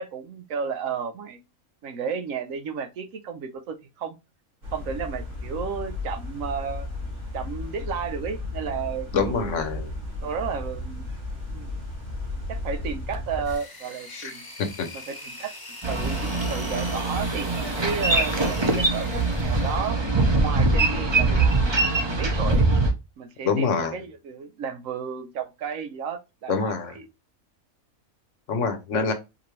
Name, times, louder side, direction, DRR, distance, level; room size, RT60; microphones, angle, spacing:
voice 1, 0.0-1.4 1.8-4.2 4.7-6.9 7.3-9.6 10.2-11.1 11.5-11.8 12.5-14.4 14.9-15.5 15.9-20.0 20.4-22.7 23.2-27.1, right 6 dB, 70° right, 1.0 m, -33 dB
sound 1, 4.6-13.6, left 2 dB, 55° right, 2.3 m, -34 dB
voice 2, 9.1-9.9 14.1-14.3 14.6-14.9 23.4-23.9 26.5-26.9 28.5-29.1, left 5 dB, 65° left, 1.1 m, -25 dB
sound 2, 13.4-20.4, left 2 dB, 20° left, 0.9 m, -42 dB
Boat Water vehicle, 15.8-22.9, right 2 dB, 25° right, 0.6 m, -23 dB
5.1 x 2.6 x 3.1 m
omnidirectional pair, 1.5 m